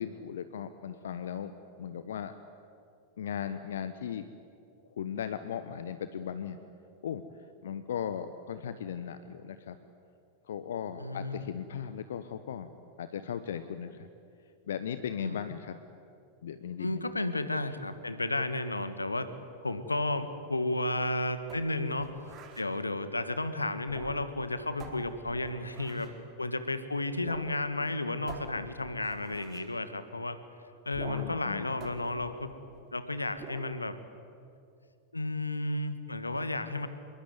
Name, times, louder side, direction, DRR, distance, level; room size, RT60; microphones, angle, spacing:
voice 1, 0.0-2.3 3.2-4.3 4.9-6.6 7.0-7.2 7.6-9.8 10.4-12.7 13.0-14.1 14.7-15.7 16.4-17.1 31.1-31.8, left 8 dB, 60° left, 11 dB, 1.1 m, -37 dB
voice 2, 11.0-11.5 15.2-15.4 16.8-19.3 19.6-22.2 22.6-26.1 26.4-30.4 30.9-32.5 32.9-34.0 35.1-36.9, left 2 dB, 80° left, 11 dB, 1.7 m, -33 dB
sound 1, 21.5-22.7 23.8-24.4 24.8-26.2 27.2-27.5 27.8-27.9 28.3-29.7 30.9-31.4 31.8-32.9 33.4-33.7, right 4 dB, 35° right, 3.6 m, -47 dB
27.0 x 22.5 x 9.7 m, 2.5 s
figure-of-eight pair, 90°, 0 cm